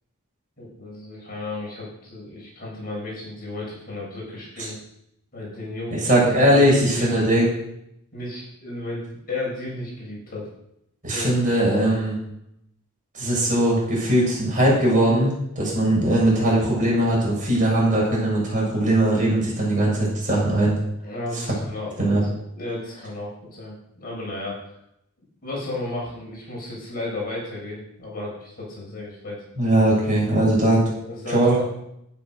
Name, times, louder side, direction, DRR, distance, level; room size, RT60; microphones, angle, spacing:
voice 1, 0.6-4.8 5.3-6.0 6.5-7.3 8.1-10.5 11.1-11.4 21.0-22.2 22.5-24.6 25.4-29.4 31.1-31.7, left 2 dB, 40° left, -4 dB, 7.8 m, -33 dB
voice 2, 5.9-7.5 11.0-12.2 13.1-20.8 21.3-21.4 22.0-22.2 29.6-30.9 31.3-31.5, right 1 dB, 35° right, -4 dB, 7.8 m, -20 dB
12.5 x 11.5 x 6.6 m, 0.78 s
head